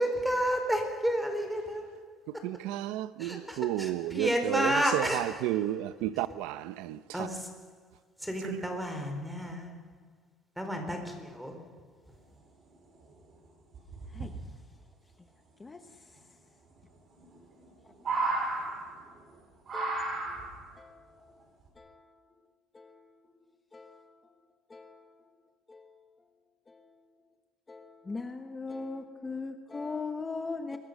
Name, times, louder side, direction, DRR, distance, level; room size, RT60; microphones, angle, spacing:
voice 1, 0.0-2.0 3.2-5.7 6.1-6.2 7.1-7.8 8.2-9.9 10.6-11.7, equal, ahead, 4.3 m, -31 dB
voice 2, 2.4-7.0, right 14 dB, 85° right, 0.9 m, -32 dB
sound 1, 12.7-12.8 13.0-13.1 13.7-14.3 15.9-16.0 17.2-17.7 17.9-19.2 19.7-20.7 21.7-21.8, right 2 dB, 35° right, 6.9 m, -33 dB
voice 3, 19.7-20.4 20.8-21.2 21.8-22.1 22.7-23.1 23.7-24.1 24.7-25.1 25.7-26.0 26.7-26.9 27.7-30.8, left 4 dB, 15° left, 1.1 m, -40 dB
27.5 x 22.5 x 6.7 m
cardioid pair, 150°, 0 cm